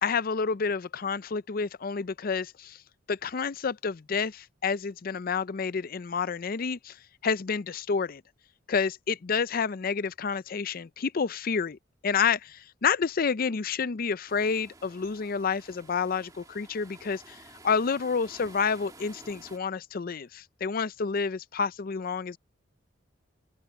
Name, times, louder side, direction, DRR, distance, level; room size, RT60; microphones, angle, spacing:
voice 1, 0.0-2.8 3.1-7.0 7.2-8.2 8.7-22.4, left 5 dB, 50° left, 0.5 m, -29 dB
sound 1, 14.3-19.6, right 2 dB, 20° right, 2.4 m, -52 dB
open air
head